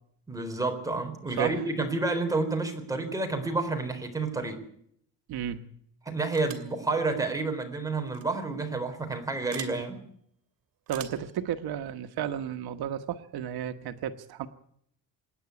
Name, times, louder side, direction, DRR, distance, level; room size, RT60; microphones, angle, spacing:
voice 1, 0.3-4.6 6.1-10.0, right 3 dB, 10° right, 3 dB, 4.1 m, -30 dB
voice 2, 5.3-5.7 10.9-14.5, right 9 dB, 90° right, 8 dB, 1.3 m, -33 dB
sound 1, 6.3-6.8 8.1-8.2 9.5-9.8 10.9-11.3, right 10 dB, 65° right, 2.9 m, -42 dB
26.5 x 10.0 x 9.6 m, 0.67 s
cardioid pair, 145°, 37 cm